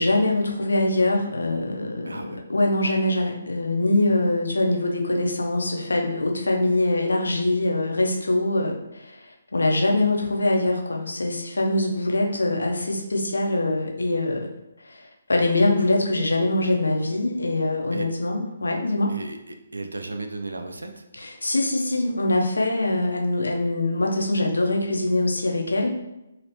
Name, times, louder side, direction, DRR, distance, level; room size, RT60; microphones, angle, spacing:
voice 1, 0.0-9.2 9.5-14.5 14.9-19.1 21.2-25.9, left 2 dB, 70° left, 1 dB, 0.6 m, -23 dB
voice 2, 2.1-2.4 17.9-18.1 19.1-21.1, right 2 dB, 75° right, 5 dB, 0.4 m, -35 dB
2.9 x 2.8 x 2.8 m, 0.92 s
figure-of-eight pair, 140°, 0 cm